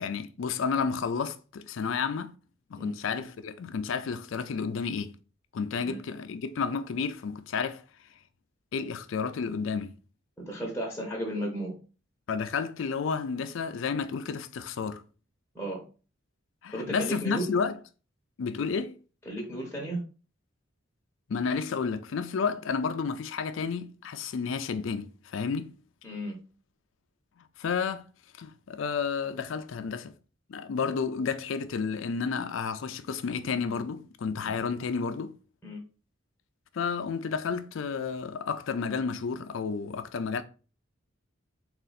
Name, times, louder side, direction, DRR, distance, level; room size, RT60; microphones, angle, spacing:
voice 1, 0.0-2.3 2.7-5.2 5.5-7.8 8.7-9.9 12.3-15.0 16.6-17.8 18.4-19.0 21.3-25.7 27.6-28.1 28.4-30.1 30.5-35.3 36.7-40.4, left 5 dB, 70° left, 0.4 m, -31 dB
voice 2, 10.4-11.8 15.5-15.8 16.7-17.5 19.3-20.0 26.0-26.3 35.6-35.8, right 1 dB, 10° left, 0.9 m, -34 dB
3.8 x 2.4 x 4.0 m
head